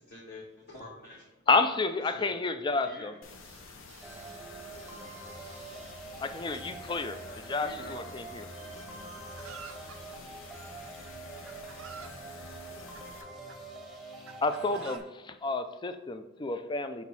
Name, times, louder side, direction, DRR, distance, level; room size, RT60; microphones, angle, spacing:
voice 1, 0.1-1.2 2.1-2.3 2.8-3.1 5.5-5.6 6.1-6.3 7.2-8.0, left 2 dB, 55° left, -7 dB, 1.6 m, -47 dB
voice 2, 1.5-3.1 6.2-8.5 14.4-17.1, left 3 dB, 25° left, 10 dB, 0.3 m, -30 dB
sound 1, 3.2-13.2, left 4 dB, 85° left, 0.7 m, -50 dB
voice 3, 3.9-4.4 4.7-5.9 6.5-6.6 8.7-9.0 10.1-10.2, right 7 dB, 35° right, 7 dB, 0.5 m, -58 dB
sound 2, 4.0-15.0, right 2 dB, ahead, 0.9 m, -45 dB
Chicken rooster, 9.4-10.0 10.9-11.0 11.5-12.2 12.9-13.6 14.3-15.0, right 6 dB, 85° right, 0.5 m, -47 dB
6.1 x 4.4 x 4.1 m, 1.1 s
head